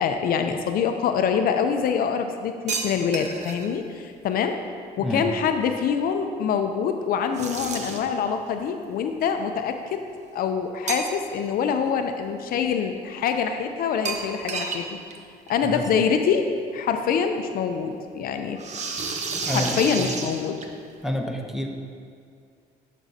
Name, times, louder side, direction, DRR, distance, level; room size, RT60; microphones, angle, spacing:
voice 1, 0.0-4.6 5.0-10.0 10.3-15.0 15.5-18.6 19.4-20.6, left 6 dB, 60° left, 6 dB, 0.5 m, -25 dB
sound 1, 2.7-3.7 7.3-8.2 10.9-11.5 11.8-11.9 14.1-14.9 15.1-15.2 15.5-15.6 16.8-16.9 18.6-20.9, right 4 dB, 45° right, 0.8 m, -31 dB
voice 2, 19.5-20.1 21.0-21.7, equal, ahead, 2 dB, 0.7 m, -28 dB
11.0 x 6.2 x 2.7 m, 2.4 s
cardioid pair, 110°, 17 cm